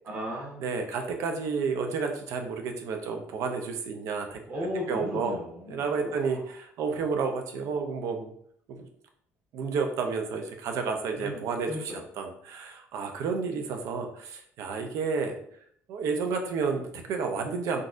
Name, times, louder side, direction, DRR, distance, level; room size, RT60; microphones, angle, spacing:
voice 1, 0.0-0.7 4.5-6.4 11.2-11.4 11.7-12.0, left 1 dB, 35° right, -3 dB, 1.2 m, -36 dB
voice 2, 0.6-4.4 4.9-5.4 5.7-8.3 8.7-8.9 9.5-15.3 15.9-17.8, right 5 dB, 70° right, 4 dB, 0.6 m, -31 dB
3.9 x 2.4 x 2.5 m, 0.66 s
cardioid pair, 125°, 5 cm